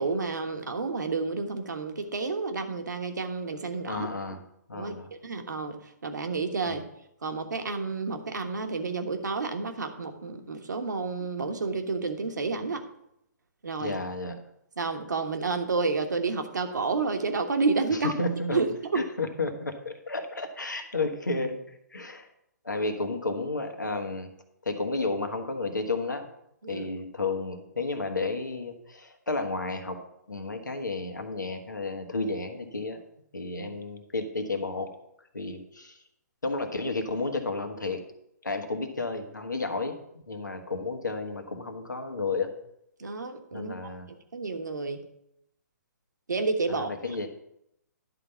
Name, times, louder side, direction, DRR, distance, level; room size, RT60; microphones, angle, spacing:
voice 1, 0.0-4.1 4.8-4.9 5.2-6.8 7.2-12.8 13.6-14.0 14.8-18.1 18.5-18.7 26.6-26.9 43.0-43.9 44.3-45.0 46.3-46.9, right 4 dB, 75° right, 6 dB, 1.3 m, -30 dB
voice 2, 3.9-4.4 4.7-5.1 6.6-6.8 13.8-14.4 17.9-18.6 18.9-22.3 22.6-24.3 24.6-26.2 26.7-30.0 30.3-33.0 33.3-34.9 35.3-36.0 36.4-38.0 38.4-40.0 40.3-42.5 43.5-44.1 46.7-47.3, left 3 dB, 90° left, 5 dB, 1.4 m, -32 dB
10.5 x 4.0 x 6.9 m, 0.78 s
figure-of-eight pair, 135°, 10 cm